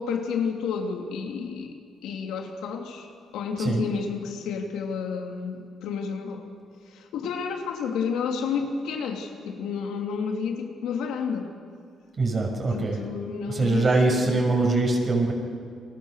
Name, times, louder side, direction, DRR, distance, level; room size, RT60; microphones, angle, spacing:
voice 1, 0.0-1.8 2.0-3.1 3.3-6.5 6.9-11.5 12.7-14.4, left 6 dB, 85° left, 2 dB, 3.1 m, -30 dB
voice 2, 12.2-13.0 13.5-15.3, right 2 dB, 40° right, 1 dB, 6.4 m, -23 dB
30.0 x 22.0 x 6.6 m, 2.2 s
cardioid pair, 90°, 0 cm